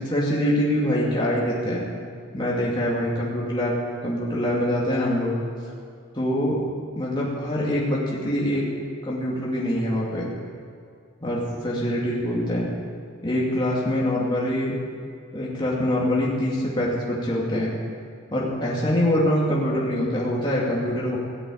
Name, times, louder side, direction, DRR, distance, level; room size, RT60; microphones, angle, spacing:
voice 1, 0.0-1.8 2.3-3.8 4.0-5.3 6.1-6.6 6.9-8.7 9.0-10.3 11.2-12.7 13.2-14.7 15.3-17.7 18.3-21.2, left 1 dB, 20° left, -5 dB, 2.5 m, -24 dB
17.5 x 8.1 x 8.7 m, 2.3 s
head